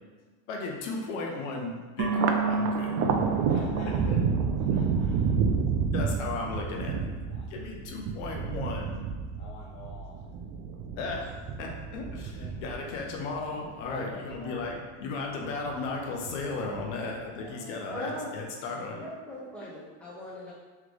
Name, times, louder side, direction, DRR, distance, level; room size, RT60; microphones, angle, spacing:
voice 1, 0.5-3.0 4.1-4.2 4.7-4.8 5.9-7.1 7.5-8.9 11.0-19.0, left 3 dB, 80° left, 0 dB, 0.9 m, -35 dB
sound 1, 2.0-5.3 5.5-5.6, right 3 dB, 75° right, 0.9 m, -32 dB
Thunder, 2.1-14.7 15.1-15.9 16.3-17.1, right 6 dB, 45° right, 0.4 m, -30 dB
voice 2, 3.3-4.2 4.6-5.4 7.3-7.9 9.4-10.2 12.1-12.8 13.9-14.7 16.8-18.1, left 3 dB, 35° left, -3 dB, 0.6 m, -47 dB
voice 3, 17.9-18.4 19.0-20.5, left 1 dB, 5° left, -9 dB, 1.4 m, -39 dB
3.7 x 3.4 x 3.2 m, 1.4 s
supercardioid pair, 125°, 35 cm